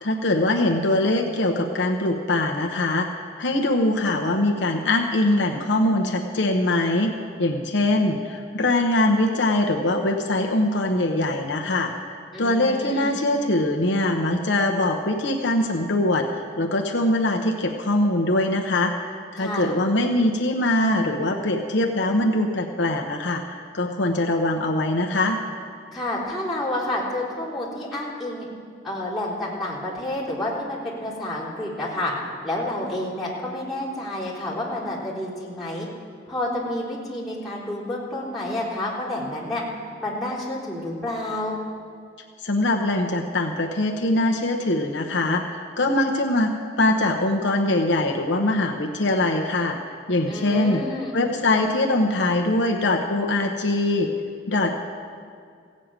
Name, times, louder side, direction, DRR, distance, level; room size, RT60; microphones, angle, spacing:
voice 1, 0.0-3.1 3.4-7.1 7.4-18.9 19.3-25.4 42.4-46.5 46.8-49.8 50.1-50.8 51.1-54.1 54.5-54.9, left 1 dB, 65° left, 1 dB, 0.9 m, -22 dB
voice 2, 12.3-13.1 19.4-19.8 25.9-28.5 28.8-32.1 32.4-35.9 36.3-39.6 40.0-41.6 50.2-51.2, left 1 dB, ahead, -10 dB, 3.7 m, -29 dB
16.0 x 6.4 x 8.9 m, 2.2 s
head